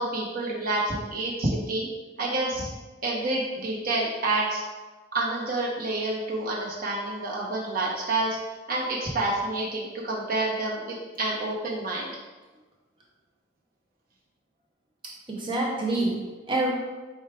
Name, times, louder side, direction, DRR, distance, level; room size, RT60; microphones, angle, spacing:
voice 1, 0.0-1.9 2.2-2.7 3.0-4.6 5.1-8.4 8.7-12.1, right 2 dB, 45° right, -4 dB, 1.0 m, -28 dB
voice 2, 15.3-16.7, right 2 dB, 25° right, -3 dB, 0.5 m, -27 dB
4.6 x 2.4 x 4.7 m, 1.2 s
head